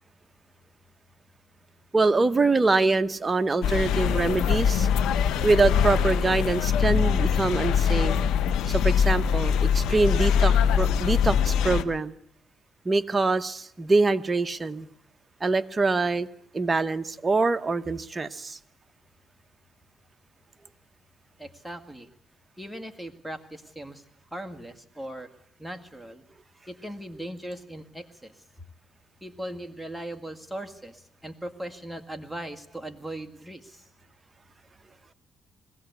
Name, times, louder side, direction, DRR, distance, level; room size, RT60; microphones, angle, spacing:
voice 1, 1.9-4.9 5.4-8.1 8.7-12.1 12.8-14.9 15.4-16.3 16.5-18.6, right 3 dB, 25° right, 10 dB, 1.0 m, -24 dB
sound 1, 3.6-11.8, left 7 dB, 85° left, 1.0 m, -23 dB
voice 2, 21.4-22.1 22.6-24.0 24.3-25.3 25.6-26.3 26.7-28.4 29.2-33.9, right 1 dB, ahead, 7 dB, 1.9 m, -39 dB
21.5 x 16.5 x 8.2 m, 0.70 s
cardioid pair, 90°, 0 cm